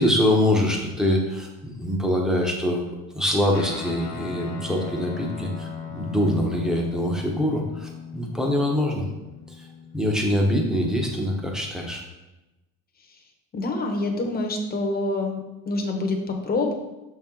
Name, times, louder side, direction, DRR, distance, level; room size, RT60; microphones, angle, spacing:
voice 1, 0.0-9.0 9.5-9.7 9.9-12.0, left 1 dB, ahead, 0 dB, 0.8 m, -24 dB
Guitar, 3.5-11.2, left 6 dB, 65° left, 1.0 m, -38 dB
voice 2, 13.5-15.4 15.7-16.7, left 2 dB, 25° left, 3 dB, 0.8 m, -26 dB
6.1 x 4.5 x 3.7 m, 1.0 s
cardioid pair, 150°, 35 cm